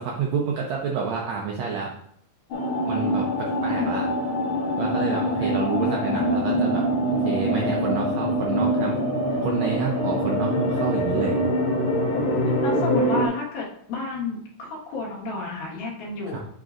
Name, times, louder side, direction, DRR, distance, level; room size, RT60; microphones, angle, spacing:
voice 1, 0.0-1.9 2.8-4.1 4.8-6.8 7.2-9.0 9.3-11.4 16.3-16.4, right 5 dB, 80° right, -1 dB, 1.5 m, -29 dB
sound 1, 2.5-13.3, equal, 65° left, 1.4 m, -24 dB
voice 2, 12.6-16.4, left 4 dB, 85° left, -4 dB, 3.5 m, -31 dB
9.3 x 4.7 x 2.5 m, 0.67 s
omnidirectional pair, 4.1 m